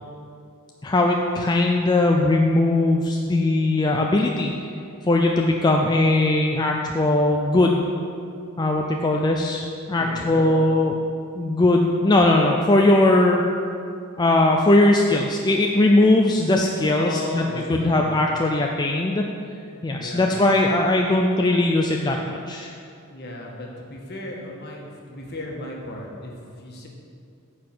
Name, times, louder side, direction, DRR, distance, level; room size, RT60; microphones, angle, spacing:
voice 1, 0.8-4.5 5.1-7.8 8.6-10.9 11.4-13.4 14.2-17.4 17.7-19.3 19.8-22.7, left 2 dB, 20° left, 1 dB, 0.4 m, -19 dB
voice 2, 10.0-10.5 16.9-18.1 19.9-20.4 23.1-26.3 26.6-26.9, left 1 dB, 50° left, -1 dB, 1.5 m, -35 dB
9.2 x 4.8 x 7.7 m, 2.5 s
head